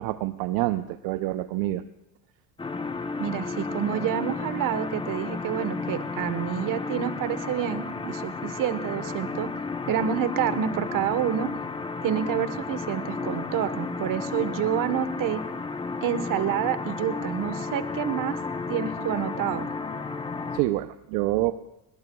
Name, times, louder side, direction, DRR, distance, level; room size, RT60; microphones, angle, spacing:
voice 1, 0.0-1.8 20.5-21.5, right 16 dB, 70° right, 10 dB, 0.7 m, -27 dB
sound 1, 2.6-20.6, left 4 dB, 15° left, 0.8 m, -33 dB
voice 2, 3.2-9.5 9.9-11.5 12.0-15.4 16.0-18.3 18.7-19.7, right 10 dB, 55° right, 11 dB, 1.3 m, -28 dB
21.0 x 19.5 x 2.3 m, 0.90 s
supercardioid pair, 100°, 39 cm